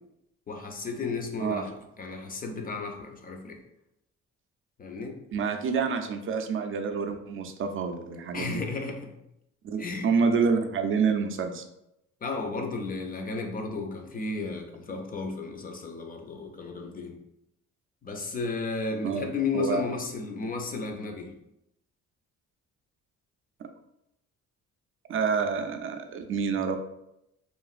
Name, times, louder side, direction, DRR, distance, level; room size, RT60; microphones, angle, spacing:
voice 1, 0.5-3.6 4.8-5.2 8.3-9.1 9.8-10.1 12.2-17.2 18.0-21.3, left 4 dB, 30° left, 3 dB, 0.5 m, -33 dB
voice 2, 5.3-8.6 9.6-11.6 19.0-19.9 23.6-23.7 25.1-26.8, right 5 dB, 45° right, 6 dB, 0.4 m, -28 dB
3.1 x 2.4 x 2.4 m, 0.83 s
cardioid pair, 90°, 30 cm